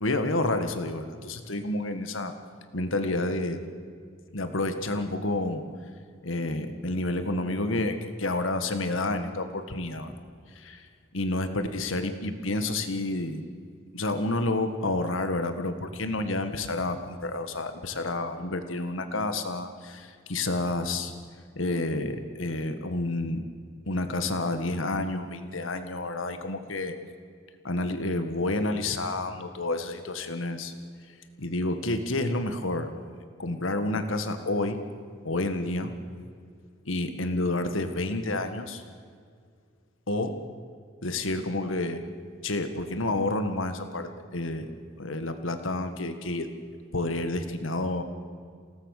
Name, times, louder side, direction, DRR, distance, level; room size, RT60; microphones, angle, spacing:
voice 1, 0.0-2.3 2.7-3.6 4.3-5.6 6.2-10.1 10.6-10.9 11.1-13.4 13.9-21.1 21.6-23.4 23.9-27.0 27.6-30.7 31.4-32.9 33.4-34.8 35.2-35.9 36.9-38.8 40.1-40.4 41.0-42.0 42.4-44.7 45.0-46.5 46.9-48.0, left 2 dB, 85° left, 8 dB, 1.8 m, -29 dB
28.5 x 18.0 x 6.7 m, 2.1 s
head